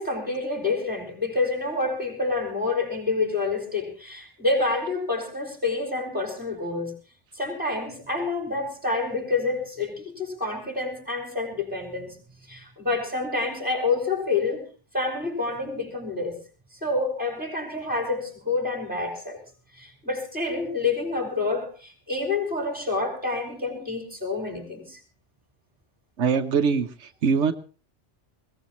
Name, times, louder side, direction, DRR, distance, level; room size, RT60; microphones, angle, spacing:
voice 1, 0.0-6.9 7.4-12.2 12.5-14.6 14.9-16.4 16.8-19.4 19.7-25.0, left 3 dB, 5° right, 5.2 m, -28 dB
voice 2, 26.2-27.5, right 5 dB, 85° right, 1.3 m, -23 dB
21.5 x 17.5 x 3.1 m
omnidirectional pair, 1.2 m